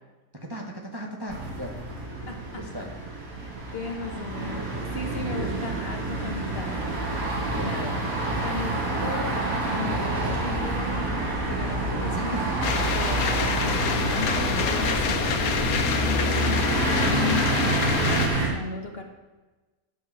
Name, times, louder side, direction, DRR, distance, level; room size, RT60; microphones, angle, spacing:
voice 1, 0.3-1.8 2.6-2.9 7.4-7.8 12.2-12.6 16.2-16.4, equal, 20° right, 1 dB, 0.9 m, -37 dB
sound 1, 1.3-18.5, right 2 dB, 70° right, 2.4 m, -28 dB
voice 2, 2.3-2.6 3.4-6.9 7.2-8.0 8.4-12.4 12.9-15.4 16.0-19.0, left 5 dB, 45° left, 3 dB, 1.3 m, -36 dB
sound 2, 12.6-18.3, left 6 dB, 80° left, 1.3 m, -27 dB
11.0 x 4.6 x 7.0 m, 1.2 s
omnidirectional pair, 1.5 m